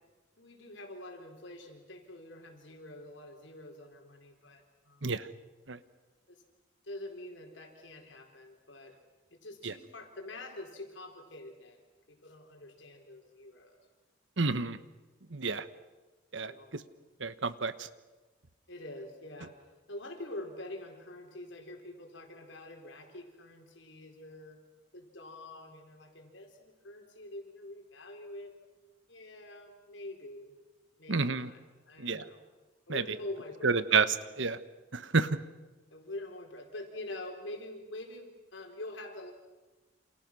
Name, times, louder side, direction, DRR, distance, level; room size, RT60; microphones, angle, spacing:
voice 1, 0.4-5.1 6.3-6.4 6.8-9.0 9.3-11.8 12.1-13.8 16.4-16.7 18.7-19.6 19.9-24.6 24.9-28.5 29.1-30.6 31.0-31.6 31.9-32.4 32.9-33.8 35.9-39.3, left 1 dB, 70° left, 3 dB, 4.7 m, -45 dB
voice 2, 14.4-14.8 15.3-15.7 16.3-16.8 17.2-17.9 31.1-31.5 32.0-32.2 32.9-33.0 33.6-34.6 34.9-35.4, right 4 dB, 70° right, 14 dB, 1.2 m, -29 dB
29.0 x 27.5 x 6.3 m, 1.2 s
head